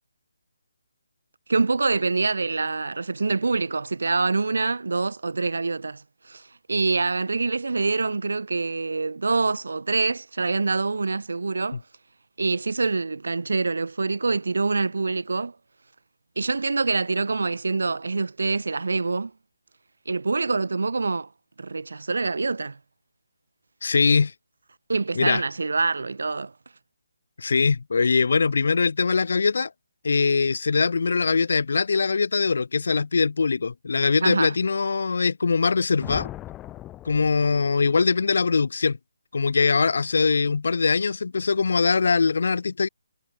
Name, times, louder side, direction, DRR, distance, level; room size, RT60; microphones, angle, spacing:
voice 1, 1.5-6.4 6.7-11.8 12.4-15.5 16.4-19.3 20.1-21.3 21.6-22.8 24.9-26.5 34.2-34.6, right 3 dB, 90° right, 0.3 m, -25 dB
voice 2, 23.8-24.3 25.2-25.4 27.4-29.7 30.0-36.3 37.1-39.0 39.3-42.9, left 4 dB, 55° left, 0.4 m, -22 dB
sound 1, 36.0-38.0, left 14 dB, 10° left, 0.6 m, -39 dB
hypercardioid pair, 180°, 0 cm